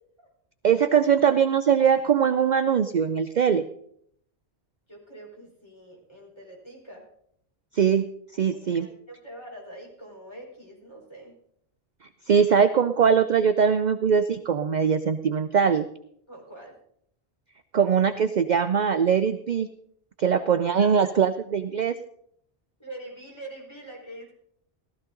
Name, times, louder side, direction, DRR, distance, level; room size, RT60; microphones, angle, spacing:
voice 1, 0.6-3.6 7.7-8.0 8.4-8.9 12.3-15.9 17.7-19.7 20.2-21.9, right 7 dB, 50° right, 10 dB, 0.6 m, -21 dB
voice 2, 4.9-7.0 8.5-11.3 16.3-16.8 20.8-21.1 22.8-24.3, right 1 dB, 25° left, -2 dB, 4.6 m, -44 dB
16.0 x 13.0 x 3.8 m, 0.68 s
omnidirectional pair, 1.1 m